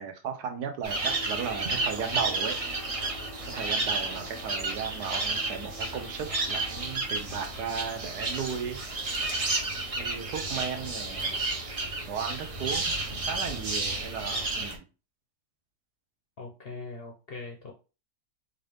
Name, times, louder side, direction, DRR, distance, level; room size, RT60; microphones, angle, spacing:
voice 1, 0.0-2.6 3.5-8.8 10.0-11.4 12.1-14.8, right 7 dB, 75° right, 1.3 m, -35 dB
sound 1, 0.8-14.8, right 2 dB, 40° right, 0.5 m, -31 dB
sound 2, 1.0-7.3, left 1 dB, 25° right, 1.0 m, -49 dB
voice 2, 16.4-17.7, left 3 dB, 50° left, 0.7 m, -41 dB
4.5 x 2.6 x 3.4 m
omnidirectional pair, 1.8 m